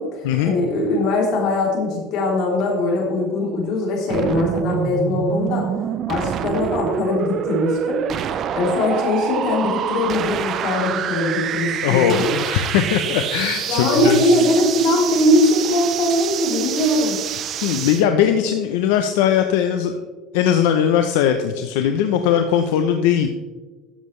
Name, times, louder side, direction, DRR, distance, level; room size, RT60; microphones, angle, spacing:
voice 1, 0.0-5.6 6.1-8.0 8.3-12.3 13.7-17.2, left 1 dB, 55° left, -2 dB, 3.4 m, -21 dB
sound 1, 4.1-18.0, right 9 dB, 40° right, 0.5 m, -26 dB
voice 2, 11.8-14.4 17.6-20.0 20.3-23.3, left 9 dB, 85° left, 7 dB, 0.7 m, -19 dB
12.5 x 7.4 x 3.2 m, 1.3 s
cardioid pair, 145°, 0 cm